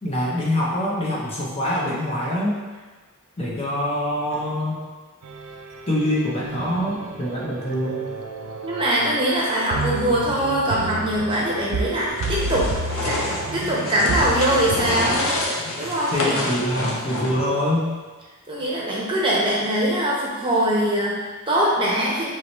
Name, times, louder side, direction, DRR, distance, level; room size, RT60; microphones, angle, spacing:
voice 1, 0.0-2.6 3.4-4.8 5.9-8.1 16.1-17.9, left 1 dB, 25° left, -5 dB, 0.6 m, -24 dB
sound 1, 5.2-15.4, right 2 dB, 75° right, 0.4 m, -31 dB
voice 2, 8.6-12.7 13.0-15.2 15.8-16.4 18.5-22.3, right 1 dB, 25° right, -5 dB, 0.8 m, -22 dB
sound 2, 12.1-17.6, left 1 dB, 70° left, 0.7 m, -28 dB
4.6 x 2.9 x 3.0 m, 1.3 s
head